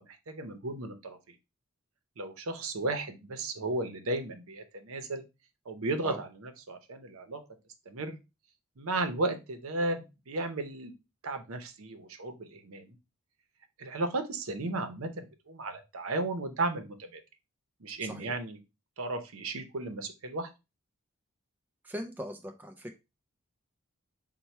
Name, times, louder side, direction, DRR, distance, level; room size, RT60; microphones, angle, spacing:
voice 1, 0.3-1.2 2.2-5.2 5.7-7.4 7.9-8.2 8.8-10.9 11.2-13.0 13.8-17.2 17.8-18.6 19.0-20.5, right 2 dB, 75° right, 7 dB, 0.7 m, -34 dB
voice 2, 18.0-18.3 21.8-22.9, equal, 10° right, 4 dB, 0.3 m, -40 dB
4.5 x 2.2 x 4.1 m, 0.26 s
head